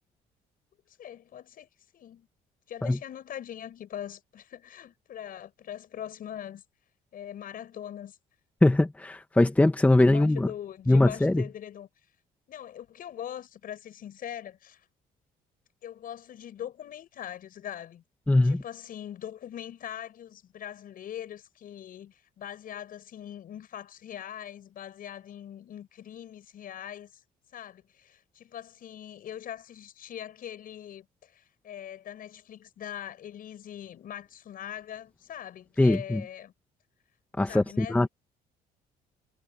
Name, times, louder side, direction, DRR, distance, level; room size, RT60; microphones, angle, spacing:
voice 1, 0.9-2.3 2.7-6.6 7.1-8.2 9.9-11.9 12.5-14.8 15.8-18.0 18.4-27.2 27.5-36.5 37.4-38.1, left 10 dB, 55° left, 6.7 m, -42 dB
voice 2, 8.6-10.5 10.9-11.4 18.3-18.6 35.8-36.2 37.4-38.1, left 2 dB, 10° left, 1.2 m, -21 dB
cardioid pair, 110°, 17 cm